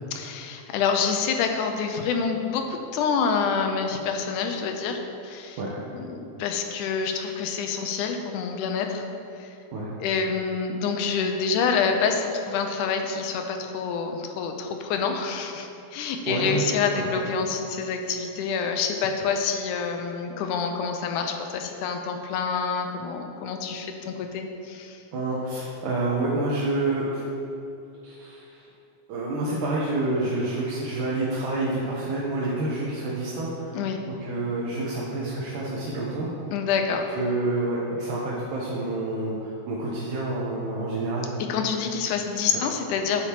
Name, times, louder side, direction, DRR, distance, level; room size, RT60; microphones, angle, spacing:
voice 1, 0.1-5.6 5.9-9.1 9.4-9.5 10.0-25.0 33.7-34.0 36.5-37.1 41.5-43.2, left 5 dB, 85° left, 4 dB, 2.2 m, -27 dB
voice 2, 16.3-16.6 16.9-17.0 25.1-27.2 28.0-28.4 29.1-33.7 34.2-36.3 37.1-41.3, right 2 dB, 90° right, -6 dB, 2.6 m, -28 dB
9.2 x 8.1 x 3.0 m, 2.8 s
omnidirectional pair, 3.6 m